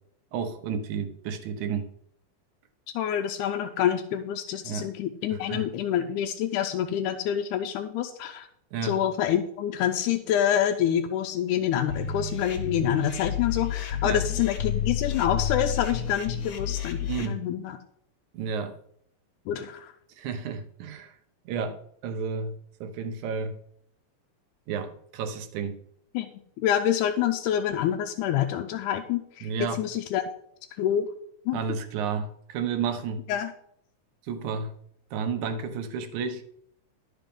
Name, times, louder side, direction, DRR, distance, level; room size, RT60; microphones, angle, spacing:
voice 1, 0.3-1.9 4.6-4.9 5.3-5.7 8.7-9.0 14.0-14.2 17.1-17.4 18.3-18.8 20.2-21.1 21.5-23.6 24.7-25.8 29.4-29.8 31.5-33.2 34.3-34.7 35.1-36.4, right 5 dB, 80° right, 8 dB, 2.3 m, -31 dB
voice 2, 3.0-8.5 8.8-17.8 19.5-19.9 26.1-26.3 26.6-30.2 30.8-31.1 31.5-31.6 33.3-33.5, left 10 dB, 85° left, 6 dB, 2.1 m, -27 dB
sound 1, 11.9-17.3, left 8 dB, 65° left, 2.3 m, -30 dB
11.5 x 5.7 x 5.2 m, 0.69 s
omnidirectional pair, 3.5 m